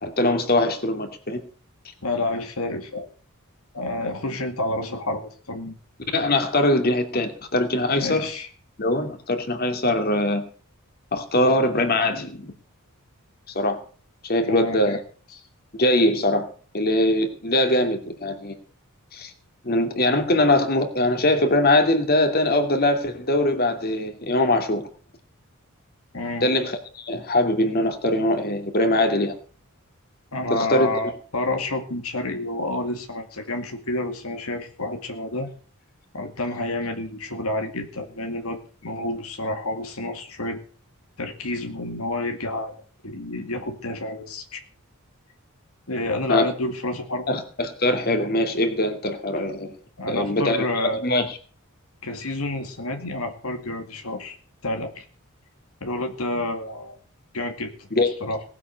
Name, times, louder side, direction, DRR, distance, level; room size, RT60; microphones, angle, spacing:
voice 1, 0.0-1.4 6.1-8.3 8.8-10.4 11.1-12.5 13.5-13.8 14.2-15.0 15.8-16.4 16.7-18.6 19.1-19.3 19.6-24.8 26.4-29.3 30.5-31.1 46.3-46.5 47.3-49.7 50.1-51.4 57.9-58.1, left 1 dB, 45° left, 2.6 m, -22 dB
voice 2, 2.0-3.1 3.7-5.8 8.0-8.5 14.4-15.0 15.3-15.4 26.1-26.5 30.3-35.5 36.1-40.6 41.2-44.6 45.9-47.4 50.0-51.1 52.0-54.4 54.6-55.0 55.8-57.0 57.3-57.9 58.2-58.4, left 2 dB, 80° left, 2.2 m, -29 dB
19.0 x 8.3 x 6.9 m
head